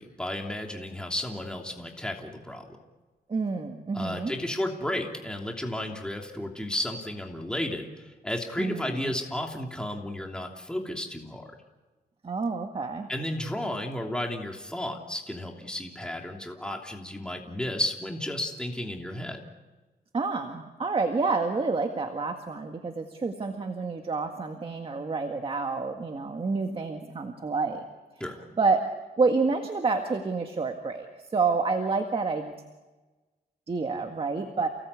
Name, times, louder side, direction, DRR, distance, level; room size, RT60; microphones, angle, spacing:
voice 1, 0.0-2.6 3.9-11.5 13.1-19.4 28.2-28.4, left 1 dB, 5° left, 1 dB, 3.0 m, -33 dB
voice 2, 3.3-4.3 8.6-9.1 12.2-13.1 20.1-27.8 28.2-28.3 28.6-28.9 29.2-31.1 31.3-32.5 33.7-34.7, right 4 dB, 35° right, 4 dB, 1.8 m, -28 dB
29.5 x 18.5 x 8.4 m, 1.2 s
wide cardioid pair, 130°, 16 cm